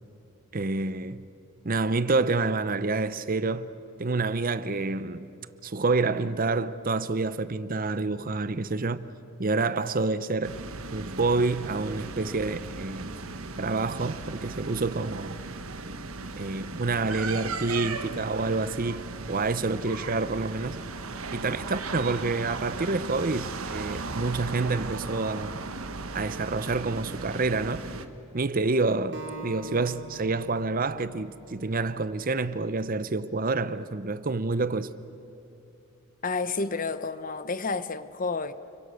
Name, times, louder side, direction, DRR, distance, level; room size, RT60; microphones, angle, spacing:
voice 1, 0.5-1.2 1.6-3.7 4.0-5.3 5.6-9.1 9.4-10.5 10.9-13.3 13.6-15.4 16.4-20.8 21.3-25.6 26.1-27.8 28.3-34.9, right 3 dB, 40° right, 0.7 m, -28 dB
sound 1, 10.4-28.1, right 3 dB, 80° right, 1.4 m, -37 dB
Acoustic guitar, 29.1-32.4, right 2 dB, 60° right, 2.6 m, -43 dB
voice 2, 36.2-38.5, left 4 dB, 40° left, 0.9 m, -30 dB
29.5 x 23.0 x 6.5 m
head